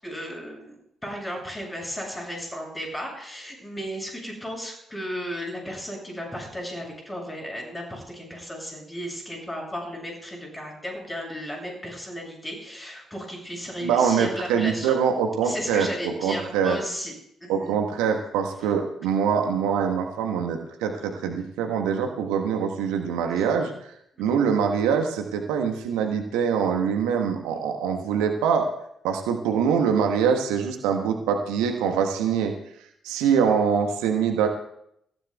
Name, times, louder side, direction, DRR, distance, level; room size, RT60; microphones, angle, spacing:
voice 1, 0.0-15.0 15.4-17.1 17.4-17.8 23.4-23.5 24.2-24.3 27.5-27.6, equal, 15° left, 0 dB, 7.1 m, -35 dB
voice 2, 13.8-16.8 17.5-23.7 24.2-28.7 29.0-32.5 33.0-34.5, right 7 dB, 65° right, 4 dB, 1.3 m, -24 dB
27.5 x 15.5 x 2.3 m, 0.73 s
figure-of-eight pair, 40°, 0 cm